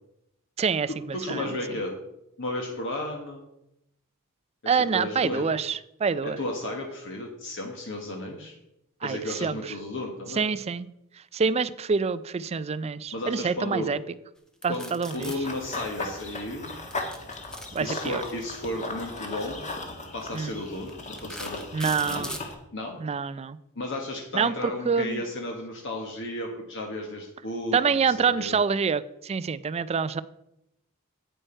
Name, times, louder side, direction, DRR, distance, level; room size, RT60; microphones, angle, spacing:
voice 1, 0.6-0.9 1.3-1.5 4.7-6.4 9.0-9.6 10.4-10.9 11.3-14.0 14.6-15.3 17.7-18.2 20.3-20.5 21.7-22.4 23.0-23.6 24.3-25.2 27.7-30.2, right 5 dB, 30° right, 16 dB, 0.4 m, -26 dB
voice 2, 1.1-1.9 2.4-3.4 4.9-5.5 6.2-8.5 9.0-10.4 13.1-13.9 14.7-16.7 17.8-19.7 20.1-21.6 22.0-22.3 22.7-23.0 23.7-28.6, left 1 dB, 60° left, 1 dB, 1.3 m, -34 dB
sound 1, 14.6-15.4 16.8-18.3 19.4-19.6 20.2-20.3 20.9-22.5, equal, 5° left, 0.9 m, -38 dB
Run / Bird vocalization bird call bird song, 15.1-22.5, left 2 dB, 35° left, 1.5 m, -37 dB
9.1 x 9.0 x 4.4 m, 0.84 s
head